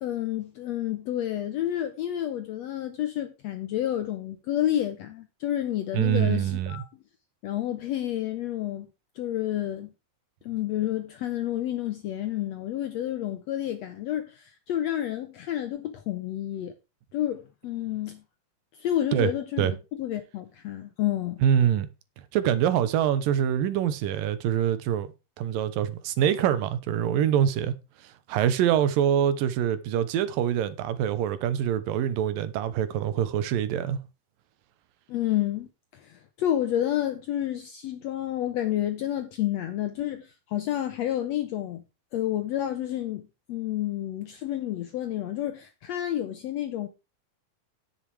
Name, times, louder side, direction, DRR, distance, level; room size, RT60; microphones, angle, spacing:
voice 1, 0.0-6.9 7.4-8.9 9.2-9.9 10.4-16.7 17.1-18.2 18.8-21.4 35.1-41.8 42.1-43.2 43.5-46.9, left 12 dB, 75° left, 1.5 m, -30 dB
voice 2, 5.9-6.8 19.1-19.3 19.6-19.7 21.4-21.9 22.3-25.1 25.4-27.7 28.3-34.0, right 10 dB, 90° right, 2.7 m, -24 dB
10.0 x 7.4 x 4.7 m
omnidirectional pair, 4.0 m